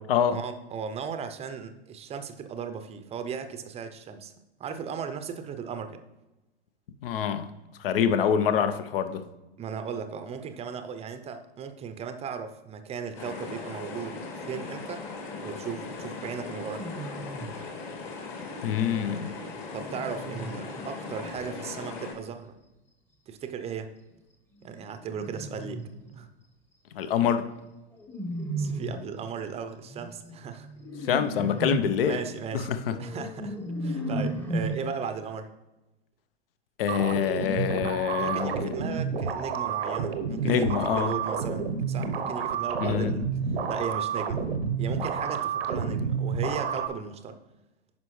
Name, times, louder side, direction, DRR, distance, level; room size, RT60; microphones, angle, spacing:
voice 1, 0.3-4.3 4.6-6.0 9.6-15.0 15.4-16.9 19.7-22.5 23.3-23.9 24.6-25.8 26.2-26.3 28.6-30.7 31.0-31.1 32.0-32.7 33.0-35.5 38.2-43.2 43.7-44.5 44.8-47.4, right 6 dB, 20° right, 9 dB, 0.6 m, -36 dB
voice 2, 7.0-7.5 7.8-9.2 18.6-19.3 26.9-27.5 31.1-32.2 32.5-32.9 36.8-38.7 40.4-41.1 42.8-43.1, left 8 dB, 60° left, 10 dB, 0.8 m, -25 dB
sound 1, 13.1-22.1, left 4 dB, 40° left, 1.8 m, -39 dB
sound 2, 15.6-16.0 16.6-17.6 19.0-21.5 24.7-26.3 27.9-29.2 29.9-34.8, right 1 dB, 5° left, 0.9 m, -35 dB
sound 3, 36.9-46.9, right 6 dB, 75° right, 0.9 m, -30 dB
9.4 x 5.5 x 3.1 m, 1.0 s
hypercardioid pair, 105°, 31 cm